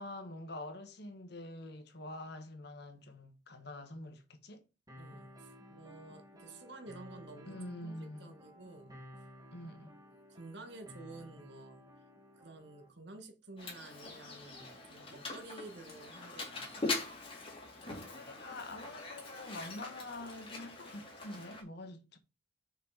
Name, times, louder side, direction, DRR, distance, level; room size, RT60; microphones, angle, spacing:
voice 1, 0.0-4.6 7.5-8.3 9.5-9.9 17.9-22.2, left 1 dB, 60° left, 1.4 m, -46 dB
sound 1, 4.9-12.9, left 1 dB, 20° right, 2.0 m, -55 dB
voice 2, 5.0-9.0 10.3-11.8 12.3-16.9, right 2 dB, 60° right, 1.6 m, -51 dB
Mechanisms, 13.6-21.6, left 3 dB, 30° left, 2.8 m, -42 dB
6.1 x 5.6 x 4.9 m
head